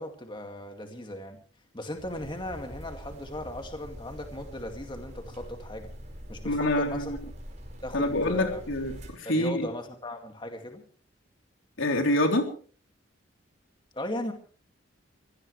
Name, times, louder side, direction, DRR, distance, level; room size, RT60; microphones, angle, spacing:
voice 1, 0.0-1.4 1.7-5.9 6.3-7.1 7.8-8.6 9.2-10.8 13.9-14.3, left 1 dB, 25° left, 4 dB, 2.1 m, -37 dB
sound 1, 2.0-9.1, equal, 35° right, 5.0 m, -44 dB
voice 2, 6.4-7.2 7.9-9.7 11.8-12.5, left 1 dB, 80° left, 4 dB, 3.5 m, -26 dB
24.5 x 17.0 x 3.3 m, 0.42 s
head